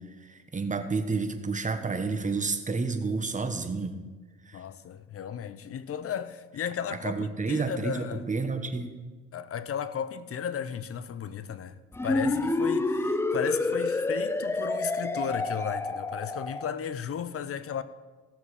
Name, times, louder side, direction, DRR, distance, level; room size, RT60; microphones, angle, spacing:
voice 1, 0.3-4.0 4.5-4.6 7.0-8.9, right 4 dB, 25° right, 1.2 m, -30 dB
voice 2, 4.5-8.3 9.3-17.8, left 8 dB, 50° left, 0.7 m, -35 dB
sound 1, 11.9-16.7, left 2 dB, 10° left, 0.4 m, -28 dB
16.0 x 6.9 x 4.9 m
cardioid pair, 90°, 30 cm